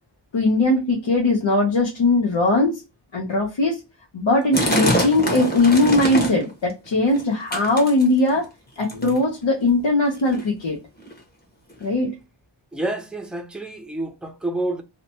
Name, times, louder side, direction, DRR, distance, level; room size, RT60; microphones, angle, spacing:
voice 1, 0.3-2.8 3.1-3.8 4.1-8.5 8.8-10.8 11.8-12.1, left 2 dB, 75° left, 0.7 m, -20 dB
sound 1, 4.5-6.5 6.8-7.2 7.5-8.4 8.9-9.2 10.0-10.1 10.3-10.4 11.0-11.1 11.8-11.9, equal, 20° left, 1.0 m, -24 dB
voice 2, 12.7-14.8, right 2 dB, ahead, 0.5 m, -28 dB
2.8 x 2.2 x 2.6 m
wide cardioid pair, 50°, 46 cm